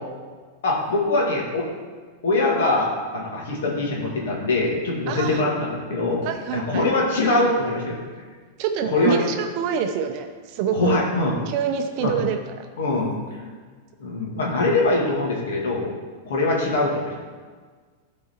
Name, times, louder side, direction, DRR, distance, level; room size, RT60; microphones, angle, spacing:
voice 1, 0.6-1.7 2.2-8.0 8.9-9.2 10.7-11.3 12.0-12.1 12.8-13.1 14.0-15.9 16.3-17.2, left 2 dB, 80° left, -2 dB, 2.2 m, -23 dB
voice 2, 5.1-5.4 6.2-6.8 8.6-11.0 11.5-12.7, right 8 dB, 40° right, 5 dB, 0.5 m, -26 dB
12.5 x 4.8 x 4.4 m, 1.5 s
supercardioid pair, 170°, 0 cm